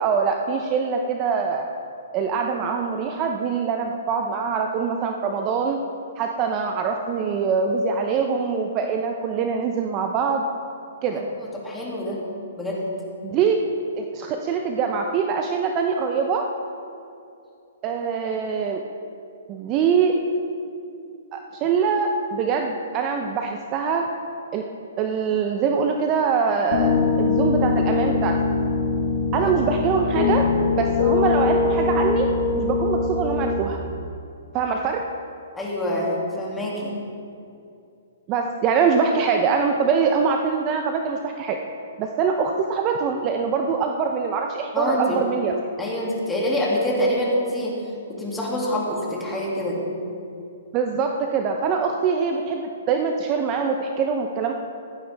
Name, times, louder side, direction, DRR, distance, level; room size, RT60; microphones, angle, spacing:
voice 1, 0.0-1.7 2.1-5.8 6.2-10.4 11.0-11.2 13.2-13.6 14.0-16.4 17.8-18.8 19.5-20.2 21.3-24.1 24.5-24.6 25.0-28.4 29.3-32.3 32.5-33.8 34.5-35.0 38.3-41.6 42.0-45.6 50.7-54.5, right 5 dB, 30° right, 3 dB, 0.7 m, -23 dB
voice 2, 11.1-12.2 12.6-12.8 29.4-29.5 35.5-36.1 36.4-36.9 44.7-45.2 45.8-47.8 48.1-49.8, left 1 dB, 5° left, -5 dB, 2.5 m, -26 dB
Piano, 26.7-33.6, left 4 dB, 55° left, 1.8 m, -22 dB
15.5 x 11.0 x 3.5 m, 2.6 s
hypercardioid pair, 150°, 0 cm